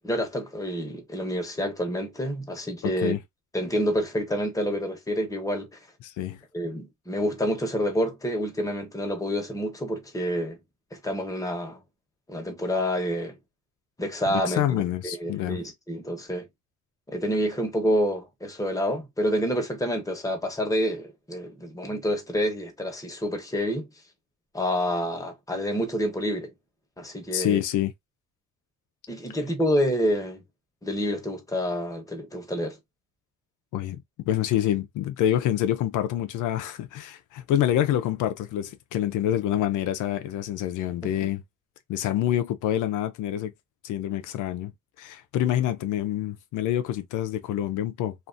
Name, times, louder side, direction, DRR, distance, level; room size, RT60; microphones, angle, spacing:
voice 1, 0.0-3.1 3.5-5.7 6.5-10.6 10.9-11.8 12.3-13.4 14.0-16.5 17.1-23.9 24.5-26.5 27.0-27.6 29.1-30.4 30.8-32.8 41.0-41.1, equal, 10° left, 0.9 m, -28 dB
voice 2, 2.8-3.2 6.0-6.4 14.3-15.6 27.3-27.9 33.7-41.4 41.9-43.5 43.8-44.7 45.0-48.1, left 11 dB, 80° left, 0.5 m, -27 dB
2.5 x 2.4 x 2.4 m
cardioid pair, 90°, 30 cm